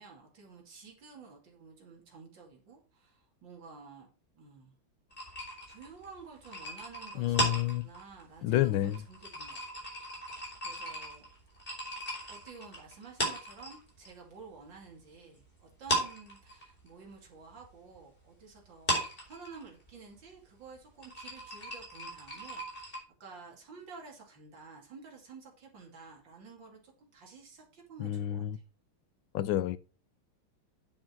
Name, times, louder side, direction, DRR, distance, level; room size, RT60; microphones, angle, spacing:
voice 1, 0.0-4.1 4.3-4.8 5.7-11.3 12.3-28.6, right 5 dB, 60° right, 3.3 m, -51 dB
sound 1, 5.1-14.1 14.4-15.4 15.7-23.0, right 1 dB, 25° left, 4.3 m, -37 dB
voice 2, 7.2-7.9 8.4-9.0 28.0-28.6 29.3-29.8, left 13 dB, 75° left, 1.4 m, -29 dB
9.3 x 7.6 x 4.6 m
omnidirectional pair, 2.3 m